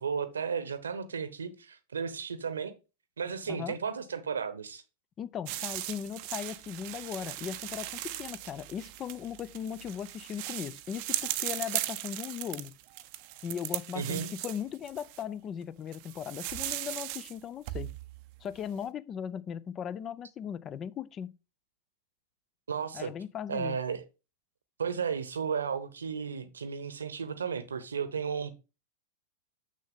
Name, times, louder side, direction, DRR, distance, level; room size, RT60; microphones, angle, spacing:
voice 1, 0.0-2.7 3.2-4.8 13.9-14.3 22.7-23.1 23.5-24.0 24.8-28.5, right 6 dB, 70° right, 0.9 m, -34 dB
voice 2, 3.5-3.8 5.2-12.7 13.4-17.9 18.4-21.3 22.9-23.8, left 8 dB, 30° left, 0.4 m, -38 dB
sound 1, 5.5-15.2 15.9-17.4 17.7-18.6, right 15 dB, 45° right, 0.5 m, -38 dB
7.1 x 6.3 x 3.6 m
figure-of-eight pair, 90°, 0 cm